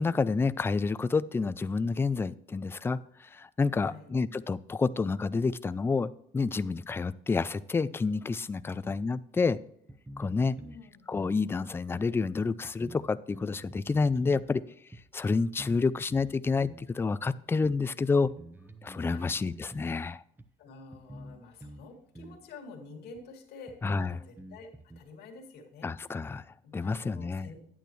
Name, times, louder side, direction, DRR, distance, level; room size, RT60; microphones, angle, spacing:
voice 1, 0.0-9.6 10.2-10.6 11.1-14.6 15.1-18.3 18.8-20.2 23.8-24.2 25.8-26.4 26.7-27.5, left 4 dB, 15° left, 16 dB, 0.3 m, -29 dB
voice 2, 3.8-4.1 8.6-8.9 10.3-11.0 19.0-19.4 20.6-24.7 25.0-25.9 26.6-27.6, left 4 dB, 75° left, 2 dB, 2.1 m, -49 dB
sound 1, 9.3-9.4 9.9-10.8 11.1-11.4 12.1-12.2 12.6-14.5 14.9-15.0 15.6-15.8 16.1-16.9 17.6-17.7 18.2-20.0 20.4-20.5 20.9-21.9 22.1-22.4 23.1-23.2 23.7-25.0, right 1 dB, 10° right, 0.9 m, -47 dB
10.0 x 9.1 x 3.1 m, 0.71 s
cardioid pair, 110°, 17 cm